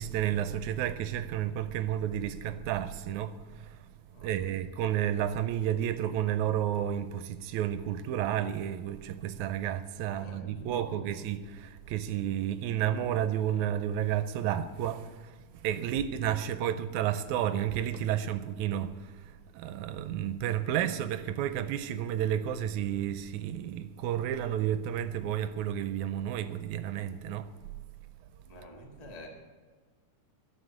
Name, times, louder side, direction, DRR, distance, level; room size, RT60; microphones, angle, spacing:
voice 1, 0.0-3.9 4.2-15.4 15.6-27.5, right 10 dB, 80° right, 1.9 m, -31 dB
voice 2, 10.1-11.2 16.6-16.8 28.5-29.3, left 1 dB, 15° left, 1.6 m, -48 dB
13.0 x 7.0 x 9.7 m
omnidirectional pair, 3.5 m